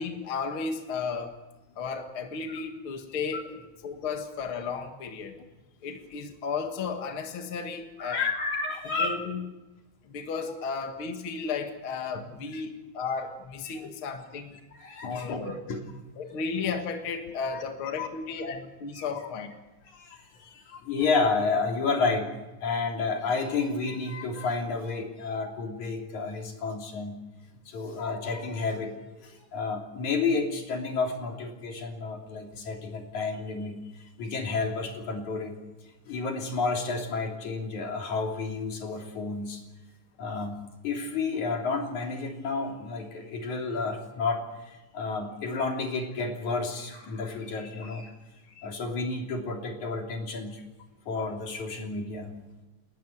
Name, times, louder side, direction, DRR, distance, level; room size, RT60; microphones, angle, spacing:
voice 1, 0.0-1.3 1.8-3.6 3.8-5.4 5.8-8.2 9.0-9.5 10.1-14.6 15.0-15.5 16.2-19.5, left 5 dB, 50° left, 5 dB, 2.4 m, -34 dB
voice 2, 8.0-9.2 12.5-12.6 13.7-13.9 14.2-14.3 14.7-15.8 17.4-17.6 18.0-18.1 18.9-19.1 19.8-22.3 22.6-27.2 27.7-33.8 34.2-35.6 36.1-39.6 40.2-40.6 40.8-48.1 48.4-50.6 51.1-52.3, left 4 dB, 75° left, 2 dB, 4.6 m, -31 dB
30.0 x 14.0 x 9.4 m, 1.1 s
omnidirectional pair, 3.4 m